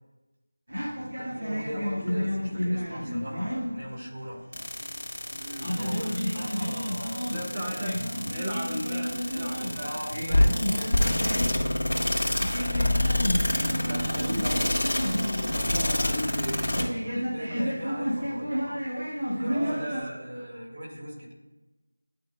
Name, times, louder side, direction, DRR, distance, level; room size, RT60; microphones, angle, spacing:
sound 1, 0.7-5.0 5.3-20.0, equal, 80° right, 1.8 m, -32 dB
voice 1, 1.2-4.4 5.8-7.9 9.8-13.0 14.4-14.5 16.0-16.4 17.1-18.8 19.3-21.3, equal, 50° right, -2 dB, 1.9 m, -40 dB
sound 2, 4.5-16.9, left 1 dB, 75° left, 1.6 m, -26 dB
voice 2, 5.4-6.5 7.3-8.0 8.3-10.0 13.5-16.8 19.5-20.4, equal, 20° right, -4 dB, 1.2 m, -36 dB
11.0 x 3.9 x 2.3 m, 1.1 s
figure-of-eight pair, 170°, 0 cm